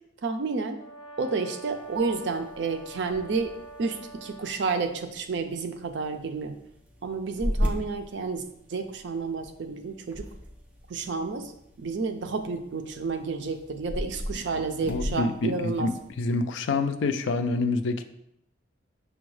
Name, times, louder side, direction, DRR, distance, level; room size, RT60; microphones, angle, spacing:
voice 1, 0.2-0.8 1.2-3.5 3.8-6.5 7.0-8.4 8.7-10.2 10.9-11.5 11.8-15.9, right 4 dB, 65° right, 6 dB, 0.4 m, -30 dB
Brass instrument, 0.7-4.6, right 2 dB, 25° left, 0.7 m, -45 dB
sound 1, 1.6-16.4, equal, 10° right, 0.4 m, -38 dB
voice 2, 14.9-18.0, left 3 dB, 70° left, 9 dB, 0.3 m, -27 dB
6.0 x 2.2 x 3.1 m, 0.77 s
head